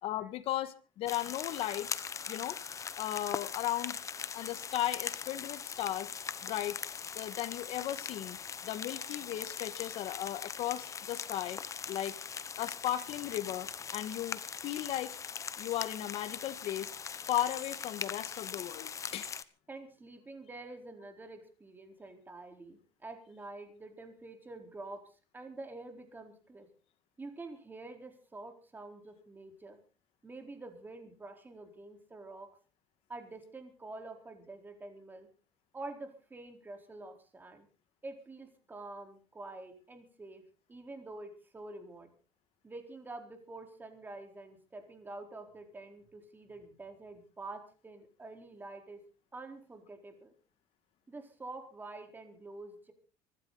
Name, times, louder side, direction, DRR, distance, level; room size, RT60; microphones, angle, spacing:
voice 1, 0.0-2.6 3.0-4.0 4.3-6.1 6.4-6.8 7.2-8.4 8.6-11.6 11.9-12.2 12.6-15.2 15.6-16.9 17.2-19.3, left 13 dB, 60° left, 1.9 m, -36 dB
sound 1, 1.1-19.4, left 6 dB, 30° left, 1.1 m, -41 dB
voice 2, 19.7-25.0 25.3-26.7 27.2-29.8 30.2-32.5 33.1-35.3 35.7-37.7 38.0-40.4 40.7-42.1 42.6-49.0 49.3-50.3 51.1-52.9, right 2 dB, 15° right, 4.3 m, -47 dB
25.0 x 12.5 x 4.1 m
cardioid pair, 125°, 11 cm